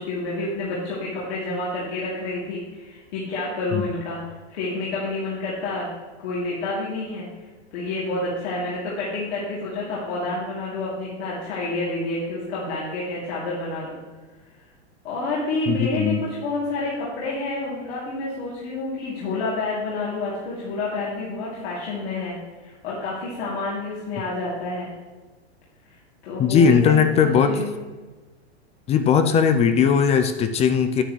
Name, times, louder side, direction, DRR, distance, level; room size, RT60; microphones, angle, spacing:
voice 1, 0.0-4.2 4.5-5.9 6.2-7.3 7.7-14.0 15.0-24.9 26.2-26.9 27.2-27.7, left 2 dB, 65° left, -7 dB, 3.1 m, -29 dB
voice 2, 15.7-16.2 26.4-27.5 28.9-31.0, left 7 dB, 20° left, 9 dB, 0.4 m, -18 dB
9.6 x 9.1 x 3.2 m, 1.3 s
hypercardioid pair, 125°, 34 cm